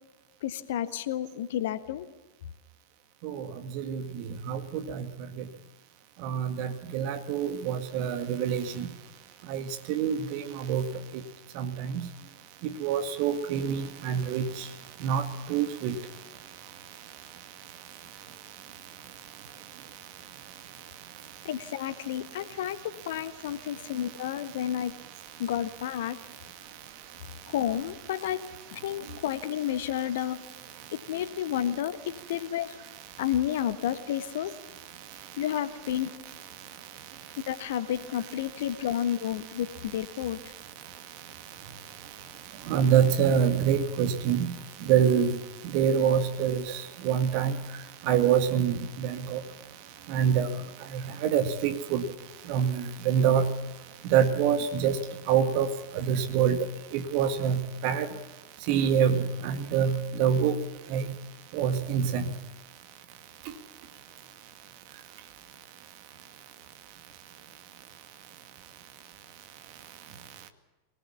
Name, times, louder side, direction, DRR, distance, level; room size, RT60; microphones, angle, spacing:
voice 1, 0.4-2.1 21.4-24.9 25.4-26.2 27.5-28.4 28.7-30.5 30.9-32.8 33.2-34.5 35.4-36.2 37.5-40.4, left 11 dB, 55° left, 1.3 m, -31 dB
voice 2, 4.5-5.0 6.2-8.9 9.5-10.8 11.6-11.9 12.8-14.5 15.0-15.9 42.7-44.5 44.9-45.3 45.7-47.5 48.1-49.4 50.1-50.5 50.9-52.0 52.5-53.5 54.1-55.0 55.3-55.7 55.9-56.6 56.9-58.1 58.7-59.2 59.4-60.6 60.9-61.0 61.5-62.2, right 8 dB, 45° right, 2.1 m, -25 dB
24.0 x 19.0 x 7.2 m
figure-of-eight pair, 90°, 0 cm